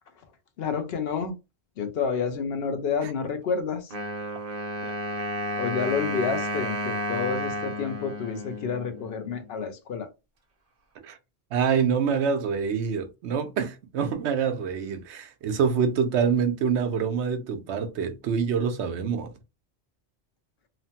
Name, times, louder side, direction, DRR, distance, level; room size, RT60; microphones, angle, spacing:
voice 1, 0.6-1.4 1.8-3.9 5.5-10.1, left 6 dB, 65° left, 0.8 m, -29 dB
Wind instrument woodwind instrument, 3.9-9.5, equal, 55° right, 0.8 m, -32 dB
voice 2, 11.5-19.3, right 6 dB, 90° right, 0.9 m, -26 dB
3.0 x 2.0 x 2.8 m
omnidirectional pair, 1.1 m